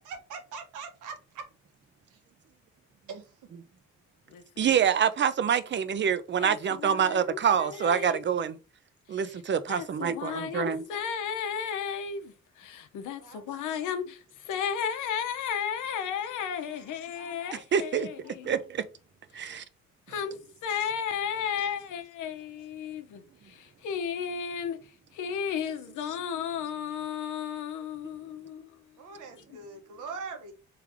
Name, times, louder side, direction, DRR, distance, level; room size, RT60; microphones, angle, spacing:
voice 1, 0.0-1.4 3.1-3.3 13.2-13.5 13.8-13.9 16.6-17.4 20.2-20.3 25.2-25.6 29.0-30.5, right 5 dB, 85° right, 1.3 m, -43 dB
voice 2, 4.6-8.6 9.1-10.8 17.5-18.1 18.4-18.8 19.3-19.6, right 8 dB, 40° right, 0.6 m, -26 dB
voice 3, 6.4-8.2 9.7-18.5 19.4-19.6 20.1-20.3 20.6-24.8 25.1-28.7, left 7 dB, 80° left, 0.9 m, -34 dB
3.5 x 3.3 x 3.5 m
cardioid pair, 90°, 30 cm